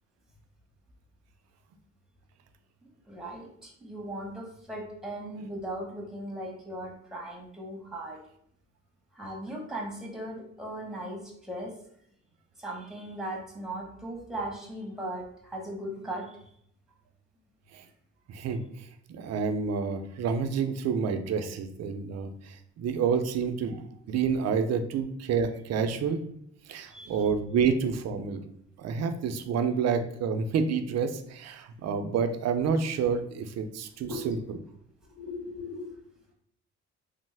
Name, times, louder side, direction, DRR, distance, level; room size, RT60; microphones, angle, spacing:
voice 1, 3.1-8.2 9.1-11.7 12.6-16.4 26.9-27.3 34.1-34.4 35.2-35.9, right 1 dB, ahead, -1 dB, 0.9 m, -38 dB
voice 2, 18.3-18.6 19.1-23.8 24.1-26.2 26.7-28.4 28.8-34.6, right 6 dB, 60° right, 8 dB, 0.5 m, -29 dB
3.1 x 2.0 x 3.3 m, 0.69 s
cardioid pair, 90°, 30 cm